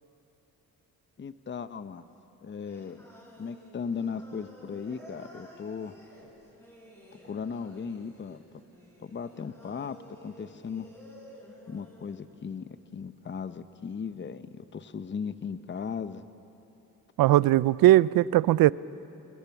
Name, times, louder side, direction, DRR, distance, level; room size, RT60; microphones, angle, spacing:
voice 1, 1.2-2.0 2.4-3.0 3.4-5.9 7.2-8.4 9.0-10.9 11.7-16.2, left 6 dB, 30° left, 0.8 m, -37 dB
Singing, 2.7-12.2, equal, 5° left, 7.7 m, -52 dB
voice 2, 17.2-18.7, right 15 dB, 70° right, 0.5 m, -19 dB
26.5 x 22.5 x 5.9 m
cardioid pair, 80°, 36 cm